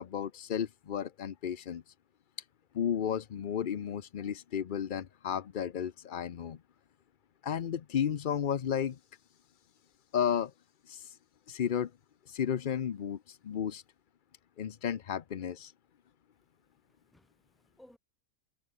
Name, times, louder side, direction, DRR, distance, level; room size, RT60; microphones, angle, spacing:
voice 1, 0.0-1.9 2.7-6.6 7.4-9.0 10.1-10.5 10.9-11.2 11.5-11.9 12.3-13.8 14.6-15.7, left 8 dB, 50° left, 0.6 m, -33 dB
voice 2, 16.7-18.0, left 1 dB, ahead, 5.3 m, -61 dB
omnidirectional pair, 1.5 m